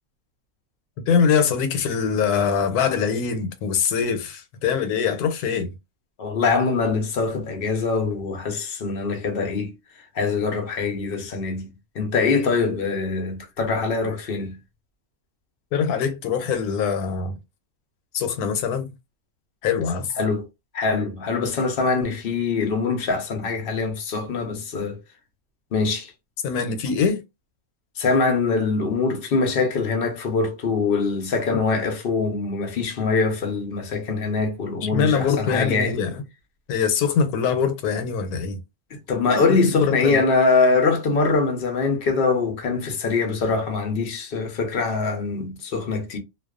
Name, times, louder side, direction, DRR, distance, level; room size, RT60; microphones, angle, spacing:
voice 1, 1.1-5.7 15.7-17.4 18.1-18.9 19.6-20.1 26.4-27.2 34.8-36.2 36.7-38.6 39.8-40.2, left 6 dB, 85° left, 1.1 m, -23 dB
voice 2, 6.2-9.7 10.2-14.6 20.2-20.4 20.7-25.0 25.7-26.1 28.0-36.0 38.9-46.2, left 4 dB, 55° left, 0.6 m, -23 dB
2.4 x 2.3 x 2.3 m
omnidirectional pair, 1.6 m